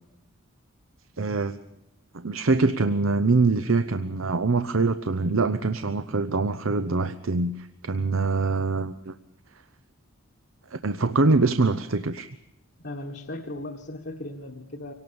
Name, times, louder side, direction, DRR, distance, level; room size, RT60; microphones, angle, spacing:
voice 1, 1.2-1.6 2.1-9.1 10.7-12.3, right 3 dB, 70° right, 11 dB, 0.8 m, -24 dB
voice 2, 12.8-14.9, left 1 dB, 50° left, 1 dB, 1.5 m, -37 dB
25.0 x 18.5 x 7.1 m, 0.90 s
head